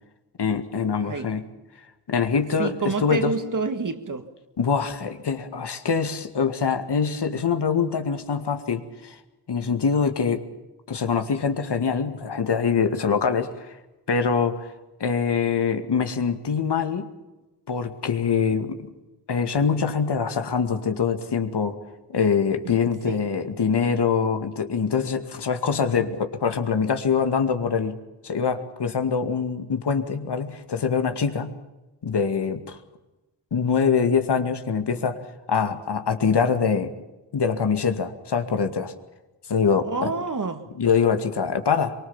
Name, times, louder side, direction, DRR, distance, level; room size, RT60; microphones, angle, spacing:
voice 1, 0.4-1.4 2.1-3.3 4.6-9.2 9.5-10.4 10.9-13.7 14.1-14.7 15.0-17.1 17.7-18.9 19.3-21.8 22.1-28.0 28.2-31.6 32.0-32.8 33.5-35.2 35.5-36.9 37.3-38.9 39.5-40.1 40.8-41.9, left 6 dB, 65° left, 2.3 m, -24 dB
voice 2, 1.0-1.4 2.6-4.3 22.6-23.2 39.8-40.8, right 4 dB, 45° right, 2.1 m, -29 dB
24.0 x 24.0 x 7.3 m
wide cardioid pair, 100°, 43 cm